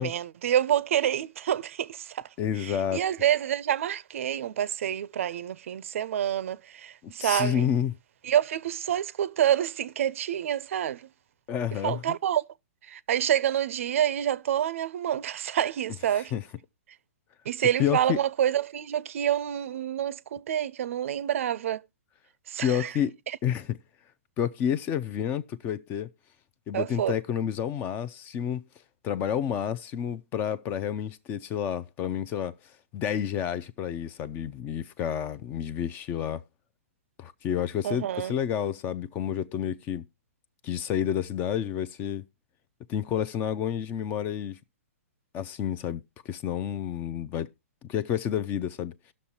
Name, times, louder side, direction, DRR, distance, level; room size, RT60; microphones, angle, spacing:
voice 1, 0.0-2.3 2.6-7.7 8.2-11.1 11.8-12.4 12.9-16.3 17.5-21.8 22.5-22.9 26.7-27.2 37.8-38.3, right 10 dB, 60° right, 0.5 m, -27 dB
voice 2, 2.4-3.0 7.2-7.9 11.5-12.0 16.1-16.4 17.8-18.2 22.6-23.1 23.4-23.8 24.4-26.1 26.7-28.6 29.0-32.5 32.9-36.4 37.2-40.0 40.6-42.2 42.9-44.6 45.3-47.5 47.9-48.9, left 9 dB, 25° left, 0.4 m, -29 dB
17.5 x 6.3 x 2.8 m
hypercardioid pair, 145°, 8 cm